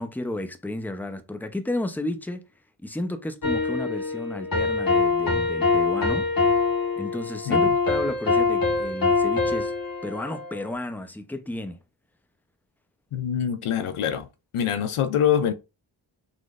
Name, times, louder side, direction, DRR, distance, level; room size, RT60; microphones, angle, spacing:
voice 1, 0.0-2.4 2.8-6.3 7.0-9.7 10.0-11.8, left 1 dB, 5° left, 0.6 m, -32 dB
sound 1, 3.4-10.7, left 4 dB, 45° left, 1.5 m, -24 dB
voice 2, 13.1-14.3 14.5-15.5, left 9 dB, 90° left, 0.6 m, -24 dB
4.0 x 3.1 x 2.5 m
cardioid pair, 40°, 49 cm